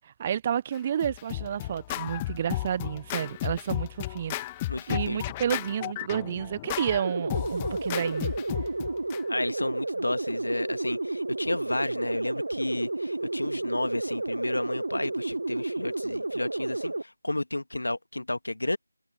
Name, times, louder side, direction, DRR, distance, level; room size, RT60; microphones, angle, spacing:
voice 1, 0.0-4.4 4.9-8.3, right 9 dB, 20° right, 0.6 m, -30 dB
Scratching (performance technique), 0.7-9.2, left 16 dB, 15° left, 1.2 m, -34 dB
voice 2, 4.7-5.2 9.3-18.8, left 2 dB, 65° left, 1.6 m, -32 dB
sound 1, 7.0-17.0, right 2 dB, 60° right, 1.1 m, -31 dB
figure-of-eight pair, 165°, 0 cm